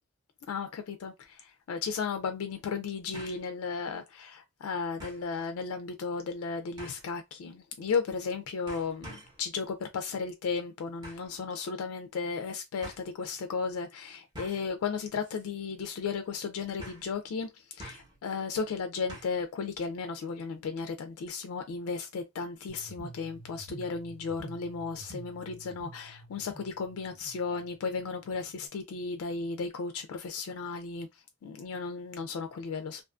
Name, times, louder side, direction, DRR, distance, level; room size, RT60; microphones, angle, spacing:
voice 1, 0.5-31.1 31.4-33.0, left 5 dB, 70° left, 0.3 m, -35 dB
sound 1, 1.2-1.3 3.1-3.5 3.9-4.0 5.0-5.3 6.8-7.1 8.1-8.3 8.7-9.4 11.0-11.3 12.3-12.4 12.8-13.0 14.3-14.7 15.2-15.5 15.7-15.8 16.8-17.1 17.8-18.2 19.1-19.4 19.7-19.8, equal, 20° right, 0.9 m, -46 dB
sound 2, 22.7-28.7, right 1 dB, 35° right, 0.6 m, -50 dB
2.4 x 2.4 x 2.3 m
head